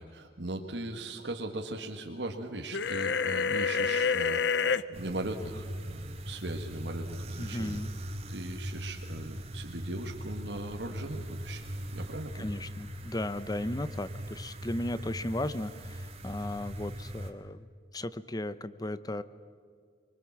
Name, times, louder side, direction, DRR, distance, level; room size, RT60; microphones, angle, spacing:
voice 1, 0.0-7.8 8.3-12.5, right 2 dB, 70° right, 3 dB, 1.7 m, -39 dB
sound 1, 2.7-4.8, left 5 dB, 70° left, 0.7 m, -28 dB
sound 2, 4.9-17.3, equal, 35° right, 2.0 m, -40 dB
voice 2, 7.4-7.9 12.4-17.6 17.9-19.2, left 1 dB, 20° left, 14 dB, 0.7 m, -35 dB
24.5 x 23.5 x 7.3 m, 2.1 s
head